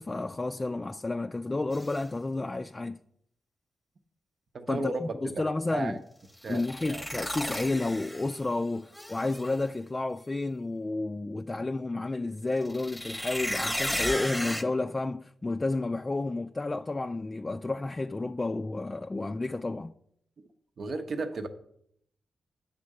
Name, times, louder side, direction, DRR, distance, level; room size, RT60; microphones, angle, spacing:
voice 1, 0.0-3.0 4.7-6.0 6.5-19.9, left 2 dB, 30° left, 0.4 m, -31 dB
sound 1, 1.7-2.0 6.4-8.5 8.9-9.6 12.6-14.6, equal, 5° left, 0.9 m, -34 dB
voice 2, 4.5-5.3 5.7-6.0 6.4-7.1 20.8-21.5, right 3 dB, 60° right, 0.7 m, -34 dB
8.5 x 3.7 x 6.5 m
supercardioid pair, 45°, 0 cm